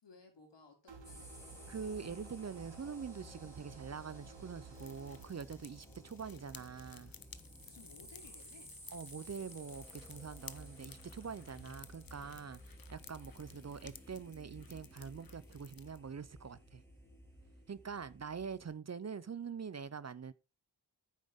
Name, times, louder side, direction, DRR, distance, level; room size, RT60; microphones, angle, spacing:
voice 1, 0.0-1.5 5.8-6.0 7.6-8.7, left 3 dB, 85° left, 3.0 m, -60 dB
sound 1, 0.9-5.3, right 3 dB, 90° right, 1.2 m, -54 dB
sound 2, 1.0-18.7, equal, 5° left, 2.9 m, -55 dB
voice 2, 1.7-7.1 8.9-16.8 17.7-20.3, right 6 dB, 40° right, 0.5 m, -44 dB
sound 3, 4.7-16.0, left 7 dB, 55° left, 0.7 m, -57 dB
9.4 x 7.4 x 3.6 m
wide cardioid pair, 75°, 42 cm